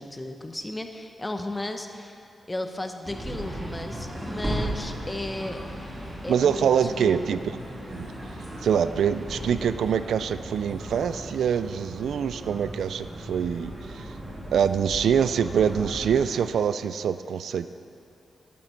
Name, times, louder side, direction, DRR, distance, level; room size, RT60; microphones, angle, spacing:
voice 1, 0.0-2.2 2.5-5.6 6.2-7.3, left 1 dB, 15° left, 6 dB, 0.8 m, -34 dB
sound 1, 3.0-16.4, right 1 dB, 15° right, 2.7 m, -36 dB
voice 2, 6.3-7.4 7.9-8.1 8.6-14.1 14.5-17.7, right 8 dB, 90° right, 12 dB, 0.4 m, -25 dB
13.5 x 11.0 x 4.4 m, 2.7 s
wide cardioid pair, 105°, 0 cm